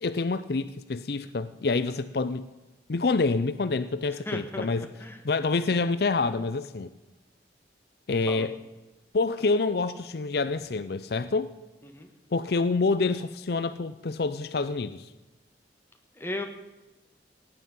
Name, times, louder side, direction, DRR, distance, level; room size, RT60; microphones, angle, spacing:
voice 1, 0.0-2.5 2.9-4.9 5.2-6.9 8.1-8.6 9.1-11.5 12.3-15.1, left 3 dB, 60° left, 13 dB, 0.5 m, -27 dB
voice 2, 4.2-5.2 8.3-8.5 11.8-12.1 16.1-16.4, left 1 dB, 15° left, 4 dB, 1.5 m, -36 dB
17.0 x 9.9 x 5.4 m, 1.1 s
head